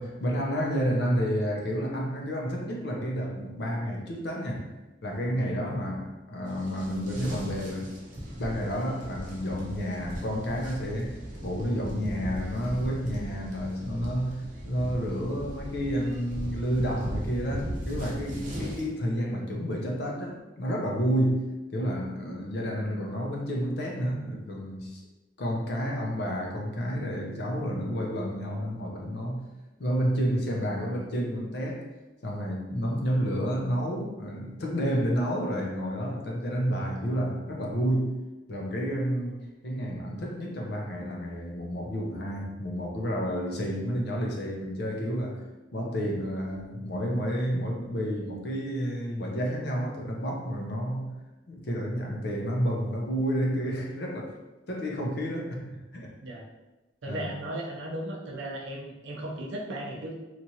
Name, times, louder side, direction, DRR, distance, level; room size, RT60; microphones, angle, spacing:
voice 1, 0.0-4.8 5.0-7.9 8.4-21.5 21.7-25.0 25.4-29.5 29.8-31.8 32.2-38.1 38.5-45.4 45.7-51.1 51.5-54.4 54.7-56.1 57.1-57.3, equal, 60° left, 0 dB, 0.6 m, -30 dB
sound 1, 6.5-18.9, equal, 40° right, 0.7 m, -38 dB
voice 2, 57.0-60.1, right 1 dB, 80° right, -1 dB, 0.6 m, -36 dB
2.9 x 2.4 x 2.8 m, 1.1 s
head